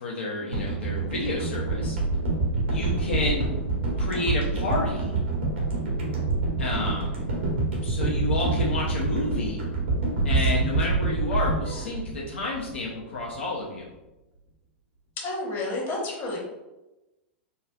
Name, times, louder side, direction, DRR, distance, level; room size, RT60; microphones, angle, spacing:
voice 1, 0.0-2.0 2.7-3.5 4.0-5.1 6.6-7.1 7.8-9.6 10.2-13.9, left 2 dB, 75° left, -4 dB, 0.6 m, -30 dB
sound 1, 0.5-12.8 13.2-13.3, right 3 dB, 75° right, 1.1 m, -26 dB
voice 2, 15.2-16.4, left 2 dB, 35° left, -2 dB, 1.0 m, -30 dB
4.1 x 2.3 x 2.3 m, 1.0 s
figure-of-eight pair, 100°, 6 cm